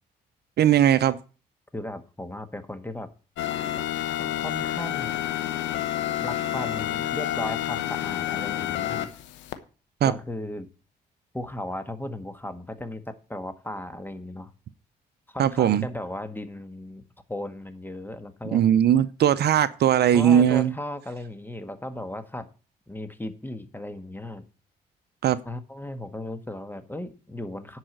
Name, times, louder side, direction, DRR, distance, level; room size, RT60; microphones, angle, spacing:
voice 1, 0.6-1.2 10.0-10.1 15.4-15.8 18.5-20.7 25.2-25.4, right 10 dB, 60° right, 0.6 m, -19 dB
voice 2, 1.7-3.1 4.2-5.2 6.2-9.1 10.0-10.7 11.3-14.5 15.3-18.6 20.1-22.5 22.9-24.4 25.4-27.8, left 1 dB, 10° left, 1.5 m, -36 dB
sound 1, 3.4-9.5, left 12 dB, 80° left, 1.0 m, -29 dB
10.0 x 4.9 x 7.9 m
supercardioid pair, 55°, 19 cm